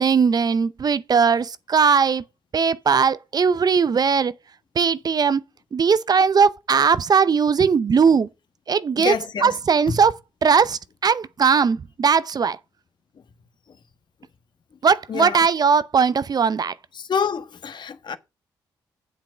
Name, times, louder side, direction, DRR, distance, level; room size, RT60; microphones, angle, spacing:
voice 1, 0.0-2.2 2.5-4.3 4.8-5.4 5.7-8.3 8.7-10.1 10.4-12.6 14.8-16.7, right 6 dB, 45° right, 0.6 m, -19 dB
voice 2, 9.0-9.5 9.9-10.0 15.1-15.4 17.0-18.2, left 6 dB, 55° left, 1.3 m, -27 dB
8.7 x 7.6 x 5.0 m
supercardioid pair, 55°, 9 cm